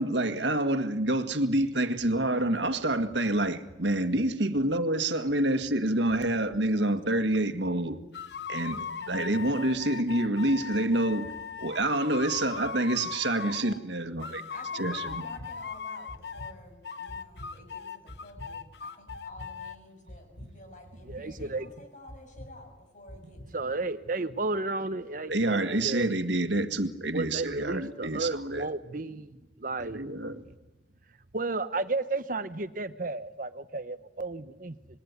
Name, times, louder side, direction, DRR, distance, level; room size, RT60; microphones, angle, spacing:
voice 1, 0.0-8.0 8.5-11.3 11.6-14.4 14.7-15.2 25.3-28.7 29.8-30.4, right 1 dB, 80° right, 1.8 m, -27 dB
sound 1, 8.1-13.8 14.2-16.5 16.8-19.7, left 6 dB, 65° left, 0.9 m, -39 dB
voice 2, 14.5-23.8, left 1 dB, 45° left, 6.7 m, -50 dB
sound 2, 15.1-15.5 16.1-16.5 17.1-17.5 18.1-18.5 19.1-19.5 20.1-20.5 21.1-21.5 22.1-22.5 23.1-23.4, equal, 80° left, 7.3 m, -45 dB
voice 3, 21.1-21.7 23.5-26.2 27.1-30.0 31.3-34.8, right 3 dB, 50° right, 1.0 m, -33 dB
26.5 x 21.5 x 9.7 m
head